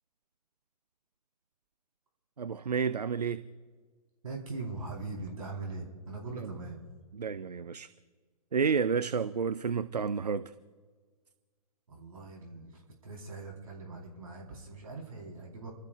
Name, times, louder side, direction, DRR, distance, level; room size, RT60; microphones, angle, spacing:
voice 1, 2.4-3.5 6.4-6.5 7.1-7.9 8.5-10.5, right 6 dB, 80° right, 0.5 m, -30 dB
voice 2, 4.2-6.8 11.9-15.7, right 3 dB, 65° right, 4.3 m, -41 dB
30.0 x 13.0 x 2.5 m
figure-of-eight pair, 120°, 20 cm